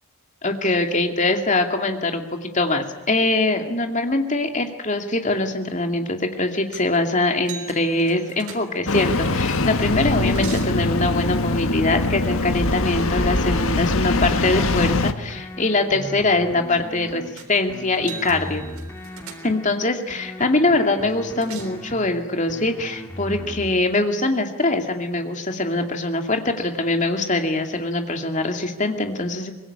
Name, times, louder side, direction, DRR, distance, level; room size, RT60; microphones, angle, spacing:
voice 1, 0.4-17.2 17.5-18.6 19.4-29.5, left 2 dB, 35° left, 5 dB, 2.4 m, -23 dB
sound 1, 6.7-7.0 7.4-9.1 9.8-10.8 17.4-17.6 17.9-19.8 21.1-21.9, right 5 dB, 80° right, 3.8 m, -40 dB
Engine starting, 8.9-15.1, left 2 dB, 70° left, 1.4 m, -22 dB
sound 2, 15.3-17.3 17.7-19.7 20.1-22.1 22.5-23.7, equal, 10° left, 2.4 m, -37 dB
24.0 x 21.0 x 9.9 m, 1.0 s
head